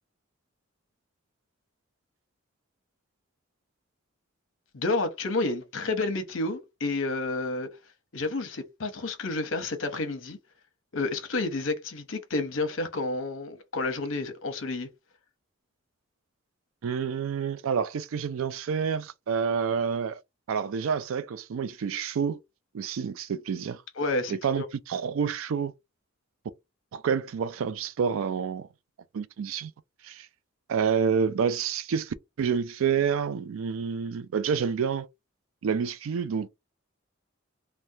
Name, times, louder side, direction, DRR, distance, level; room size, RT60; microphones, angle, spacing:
voice 1, 4.7-7.7 8.1-10.4 10.9-14.9 24.0-24.7, left 2 dB, 70° left, 0.8 m, -30 dB
voice 2, 16.8-20.2 20.5-22.4 22.7-23.8 24.3-25.7 26.9-28.7 29.1-29.7 30.0-30.3 30.7-35.1 35.6-36.5, right 6 dB, 80° right, 0.4 m, -28 dB
3.3 x 2.1 x 2.7 m
head